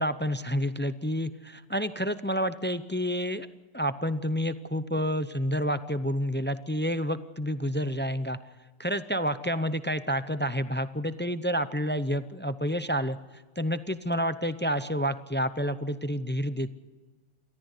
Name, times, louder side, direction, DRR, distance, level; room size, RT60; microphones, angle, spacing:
voice 1, 0.0-3.5 3.7-8.4 8.8-16.7, equal, 15° left, 12 dB, 0.3 m, -29 dB
29.0 x 14.0 x 8.3 m, 1.3 s
omnidirectional pair, 1.4 m